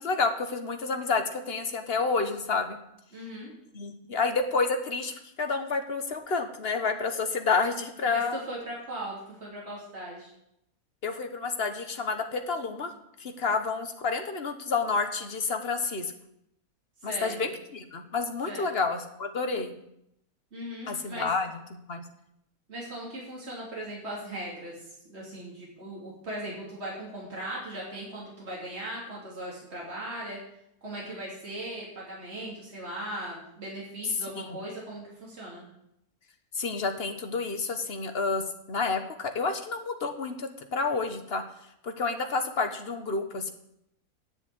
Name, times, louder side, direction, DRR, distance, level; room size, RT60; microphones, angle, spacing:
voice 1, 0.0-2.8 3.7-8.4 11.0-12.9 13.2-16.1 17.0-19.8 20.9-22.0 34.3-34.6 36.5-41.4 41.8-43.5, left 4 dB, 45° left, 6 dB, 1.3 m, -29 dB
voice 2, 3.1-3.5 8.1-10.3 17.0-17.6 18.5-18.7 20.5-21.3 22.7-30.4 30.8-35.6, right 1 dB, 45° right, -5 dB, 3.4 m, -38 dB
10.0 x 7.1 x 8.2 m, 0.78 s
omnidirectional pair, 1.5 m